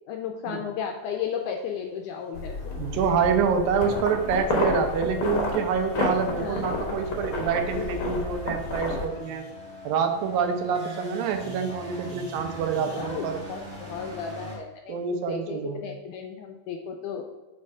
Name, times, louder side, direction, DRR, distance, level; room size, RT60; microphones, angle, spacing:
voice 1, 0.1-2.6 6.3-6.6 7.6-8.1 12.9-17.2, left 7 dB, 80° left, 3 dB, 1.8 m, -34 dB
sound 1, 2.2-14.6, right 1 dB, 60° right, 0.7 m, -45 dB
sound 2, 2.3-9.1, left 2 dB, 65° left, 1.3 m, -30 dB
voice 2, 2.8-9.4 9.8-13.4 14.9-15.8, right 6 dB, 80° right, 6 dB, 2.5 m, -26 dB
Wind instrument woodwind instrument, 3.7-13.1, left 5 dB, 30° left, 1.5 m, -46 dB
6.5 x 4.3 x 4.8 m, 1.2 s
omnidirectional pair, 4.0 m